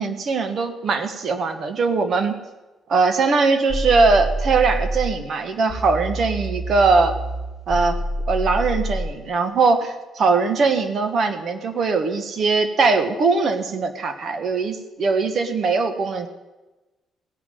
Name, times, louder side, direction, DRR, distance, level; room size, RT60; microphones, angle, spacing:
voice 1, 0.0-2.3 2.9-7.1 7.7-8.0 8.3-16.3, right 4 dB, 55° right, 8 dB, 1.6 m, -20 dB
sound 1, 3.7-5.2 5.7-9.2, right 1 dB, 35° right, 4.7 m, -27 dB
17.5 x 6.0 x 9.2 m, 1.1 s
cardioid pair, 90°, 0 cm